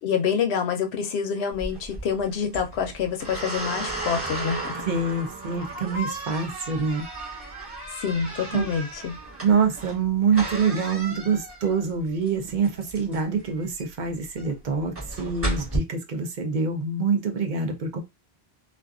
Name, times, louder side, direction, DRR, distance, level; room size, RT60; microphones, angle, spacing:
voice 1, 0.0-4.7 8.0-9.1, left 7 dB, 80° left, 0.9 m, -27 dB
sound 1, 1.5-15.8, right 2 dB, 15° right, 1.0 m, -35 dB
voice 2, 4.8-7.8 8.5-8.7 9.4-18.0, right 5 dB, 55° right, 0.6 m, -26 dB
2.4 x 2.4 x 2.3 m
omnidirectional pair, 1.1 m